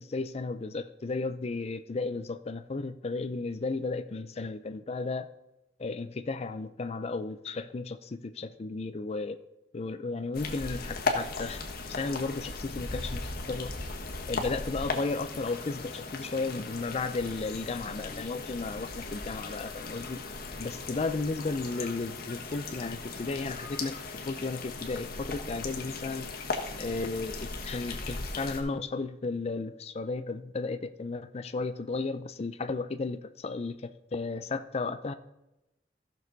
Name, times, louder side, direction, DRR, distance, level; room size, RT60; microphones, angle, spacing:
voice 1, 0.0-5.3 5.8-9.4 9.7-11.6 11.9-13.7 14.3-20.2 20.6-24.0 24.2-26.3 26.8-35.1, left 3 dB, 35° left, 10 dB, 0.4 m, -34 dB
sound 1, 10.3-28.6, left 3 dB, 55° left, 1.3 m, -37 dB
15.0 x 6.5 x 4.0 m, 0.94 s
head